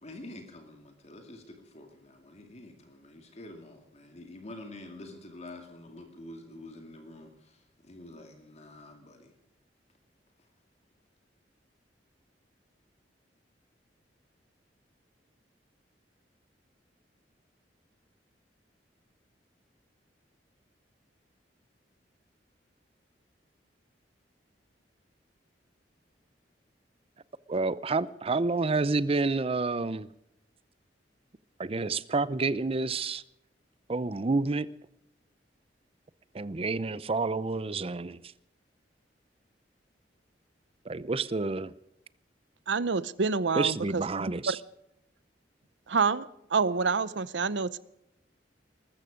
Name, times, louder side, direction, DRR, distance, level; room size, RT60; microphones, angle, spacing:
voice 1, 0.0-9.3, left 1 dB, 40° left, 2.3 m, -47 dB
voice 2, 27.5-30.1 31.6-33.2 33.9-34.7 36.3-38.2 40.9-41.7 43.6-44.6, right 3 dB, 35° right, 0.6 m, -29 dB
voice 3, 42.7-44.6 45.9-47.8, right 4 dB, 85° right, 0.7 m, -28 dB
20.5 x 14.0 x 5.1 m
head